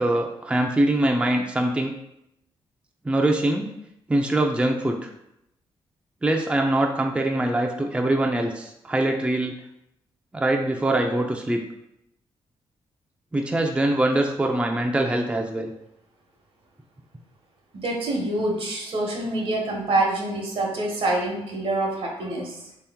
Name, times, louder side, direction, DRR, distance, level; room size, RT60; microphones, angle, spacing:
voice 1, 0.0-1.9 3.1-3.7 4.1-5.1 6.2-9.5 10.3-11.6 13.3-15.7, right 1 dB, 10° right, 2 dB, 0.4 m, -23 dB
voice 2, 17.7-22.6, right 2 dB, 65° right, 0 dB, 1.0 m, -26 dB
3.3 x 2.9 x 3.5 m, 0.82 s
cardioid pair, 65°, 10 cm